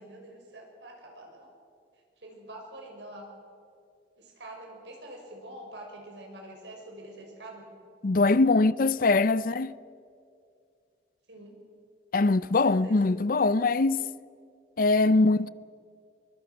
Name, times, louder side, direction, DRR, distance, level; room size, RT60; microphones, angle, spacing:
voice 1, 0.0-1.5 2.2-3.3 4.2-7.6 11.3-11.5 12.4-13.0, right 1 dB, 80° right, 5.9 m, -45 dB
voice 2, 8.0-9.7 12.1-14.0 14.8-15.5, left 3 dB, 50° left, 0.5 m, -22 dB
23.5 x 22.5 x 6.2 m
head